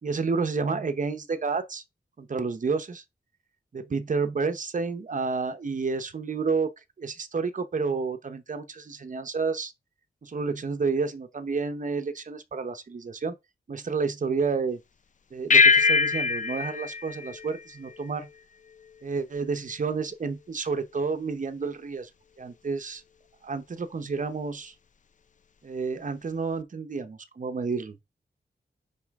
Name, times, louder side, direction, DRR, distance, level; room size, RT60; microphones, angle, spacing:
voice 1, 0.0-1.8 2.2-3.0 3.7-6.7 7.0-9.7 10.2-13.3 13.7-14.8 15.3-18.3 19.0-22.1 22.4-23.0 23.4-24.7 25.6-28.0, right 4 dB, 45° right, 0.8 m, -30 dB
sound 1, 15.5-18.3, left 5 dB, 45° left, 0.5 m, -23 dB
9.8 x 4.1 x 3.6 m
wide cardioid pair, 135°, 18 cm